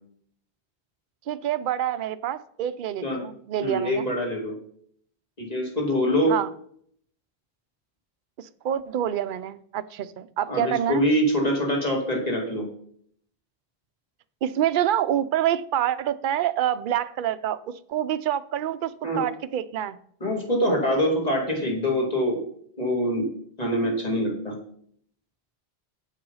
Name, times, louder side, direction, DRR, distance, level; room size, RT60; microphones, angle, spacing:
voice 1, 1.3-4.1 6.3-6.5 8.4-11.1 14.4-20.0, right 11 dB, 60° right, 0.7 m, -27 dB
voice 2, 3.6-4.6 5.4-6.3 10.5-12.7 19.0-19.2 20.2-22.4 22.8-23.3 23.6-24.5, equal, 40° left, 2.5 m, -24 dB
7.7 x 7.5 x 5.5 m
omnidirectional pair, 1.1 m